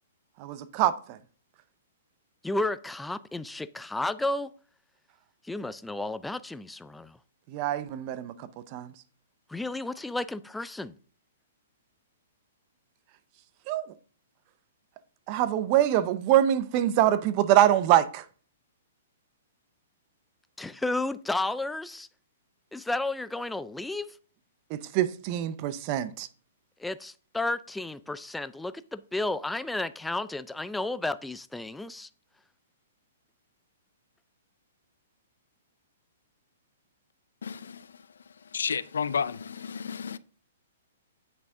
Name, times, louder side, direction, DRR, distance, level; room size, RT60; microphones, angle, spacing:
voice 1, 0.4-1.2 7.5-8.9 13.7-13.9 15.3-18.2 24.7-26.3, right 12 dB, 35° right, 0.6 m, -24 dB
voice 2, 2.4-4.5 5.4-7.2 9.5-10.9 20.6-22.1 22.7-24.2 26.8-32.1, left 2 dB, 5° left, 0.3 m, -32 dB
voice 3, 37.4-38.1 38.4-40.2, left 6 dB, 90° left, 0.4 m, -32 dB
8.2 x 6.2 x 3.6 m
hypercardioid pair, 145°, 0 cm